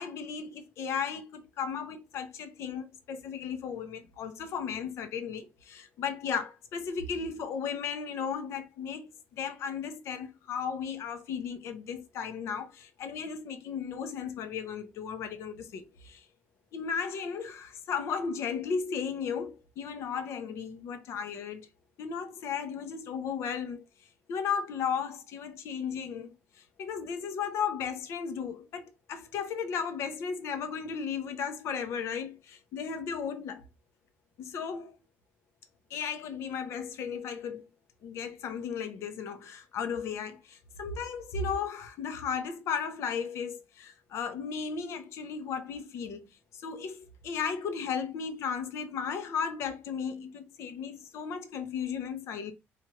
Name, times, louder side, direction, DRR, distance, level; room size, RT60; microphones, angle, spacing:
voice 1, 0.0-16.2 16.7-21.7 22.0-23.8 24.3-26.3 26.8-33.6 34.4-35.0 35.9-37.6 38.0-46.2 46.6-52.5, left 6 dB, 70° left, 0.7 m, -35 dB
4.3 x 2.5 x 2.9 m
cardioid pair, 150°, 5 cm